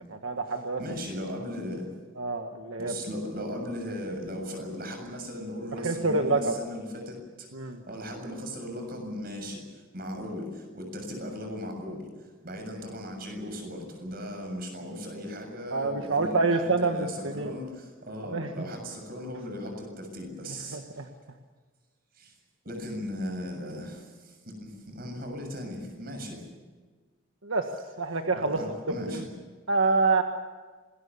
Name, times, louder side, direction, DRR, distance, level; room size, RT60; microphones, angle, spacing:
voice 1, 0.1-0.8 2.2-2.9 5.8-6.5 7.5-7.8 15.7-17.5 18.3-18.5 20.7-21.1 27.4-28.6 28.9-29.2 29.7-30.2, right 3 dB, 80° right, 4 dB, 1.6 m, -27 dB
voice 2, 0.8-1.9 2.8-21.0 22.1-22.3 22.6-26.5 28.5-29.3, equal, 45° right, 4 dB, 7.2 m, -37 dB
26.5 x 21.0 x 7.1 m, 1.4 s
head